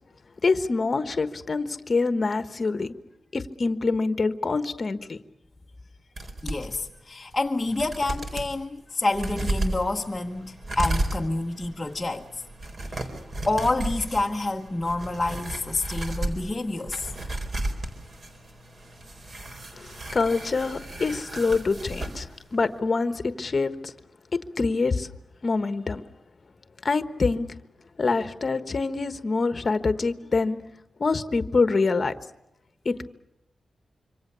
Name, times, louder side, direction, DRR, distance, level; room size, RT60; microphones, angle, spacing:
voice 1, 0.4-2.9 3.3-5.2 19.7-23.9 24.6-25.1 25.4-26.0 26.8-27.5 28.0-30.6 31.0-32.1 32.8-33.1, left 4 dB, 35° left, 1.3 m, -25 dB
sound 1, 6.2-6.8 7.3-7.4 7.7-8.5 9.1-22.3 22.5-22.6, right 1 dB, 40° right, 4.0 m, -33 dB
voice 2, 6.4-12.4 12.9-13.1 13.5-17.1, left 2 dB, 10° left, 1.2 m, -28 dB
26.5 x 25.0 x 6.9 m
wide cardioid pair, 175°, 0 cm